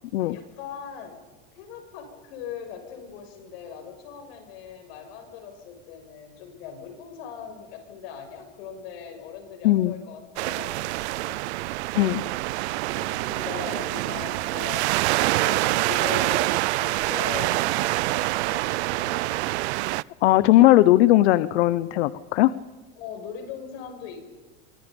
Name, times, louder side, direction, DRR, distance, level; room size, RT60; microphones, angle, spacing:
voice 1, 0.2-1.2 1.5-11.4 12.9-15.0 15.4-19.4 23.0-24.2, left 7 dB, 65° left, 5 dB, 6.7 m, -40 dB
sound 1, 10.4-20.0, right 19 dB, 80° right, 0.7 m, -26 dB
voice 2, 20.2-22.5, left 15 dB, 80° left, 16 dB, 0.9 m, -18 dB
29.0 x 24.5 x 5.4 m, 1.3 s
supercardioid pair, 160°, 33 cm